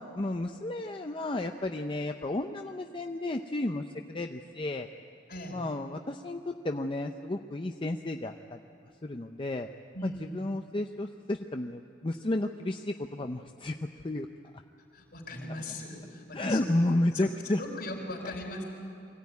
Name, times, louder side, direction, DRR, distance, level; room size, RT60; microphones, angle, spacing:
voice 1, 0.0-4.9 5.5-8.6 9.0-9.7 10.0-13.8 14.0-14.3 16.3-17.6, left 1 dB, 30° left, 5 dB, 0.6 m, -32 dB
voice 2, 5.3-5.6 9.9-10.4 14.9-16.8 17.1-18.6, left 1 dB, 60° left, 2 dB, 4.2 m, -39 dB
23.0 x 16.0 x 9.4 m, 2.7 s
head